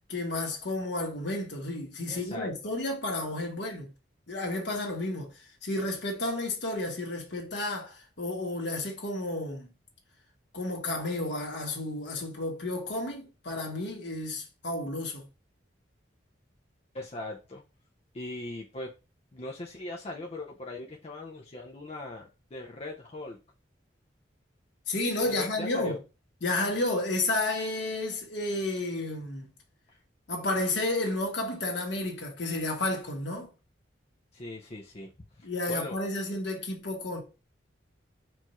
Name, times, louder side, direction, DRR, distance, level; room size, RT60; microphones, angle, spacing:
voice 1, 0.1-3.9 4.3-5.3 5.6-9.7 10.5-15.3 24.9-25.9 26.4-29.5 30.3-33.5 35.4-37.2, left 2 dB, 70° left, 1.4 m, -31 dB
voice 2, 2.1-2.5 16.9-17.6 18.1-18.9 19.3-23.4 25.3-26.0 29.9-30.0 34.3-35.1 35.4-36.0, left 2 dB, 35° left, 0.5 m, -40 dB
4.6 x 2.6 x 4.2 m
head